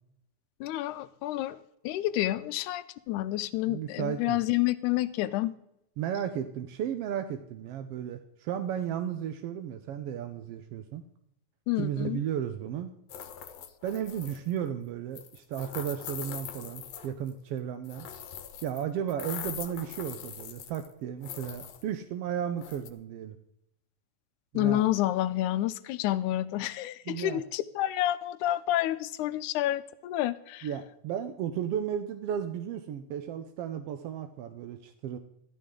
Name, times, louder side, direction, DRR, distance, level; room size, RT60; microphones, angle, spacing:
voice 1, 0.6-5.5 11.7-12.2 24.5-30.7, left 14 dB, 85° left, 13 dB, 2.1 m, -29 dB
voice 2, 3.7-4.4 6.0-11.0 11.8-12.9 13.8-18.1 18.6-23.4 24.5-24.9 27.1-27.4 30.6-35.2, right 9 dB, 75° right, 8 dB, 1.4 m, -34 dB
sound 1, 13.1-14.5 15.2-17.3 17.8-18.8 19.1-20.9 21.2-21.8 22.6-22.9, left 9 dB, 65° left, 1.9 m, -42 dB
14.0 x 13.0 x 3.8 m, 0.79 s
omnidirectional pair, 3.5 m